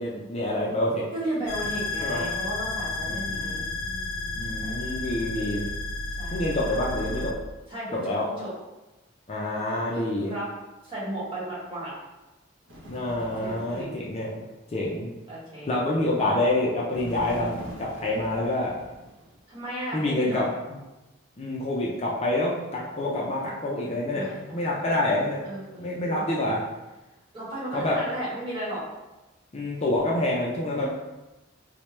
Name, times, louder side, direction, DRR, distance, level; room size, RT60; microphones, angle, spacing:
voice 1, 0.0-1.1 2.0-2.2 3.1-3.6 4.3-5.6 6.3-7.3 7.9-8.3 9.3-10.3 12.9-14.3 14.7-15.1 15.7-18.8 19.9-20.8 21.4-25.5 25.8-26.6 27.7-28.0 29.5-30.9, left 1 dB, 30° left, -4 dB, 0.4 m, -27 dB
voice 2, 1.1-4.7 6.2-6.4 7.7-8.5 9.9-10.5 10.8-11.9 13.4-13.9 15.3-15.7 19.5-20.5 24.1-24.9 25.1-26.4 27.3-28.9 30.7-30.9, right 1 dB, 25° right, -8 dB, 1.3 m, -35 dB
sound 1, 1.5-7.3, left 3 dB, 80° left, 0.5 m, -32 dB
Bird, 12.7-14.1 16.9-19.4, left 1 dB, 65° right, 0.9 m, -43 dB
4.4 x 2.1 x 3.1 m, 1.1 s
head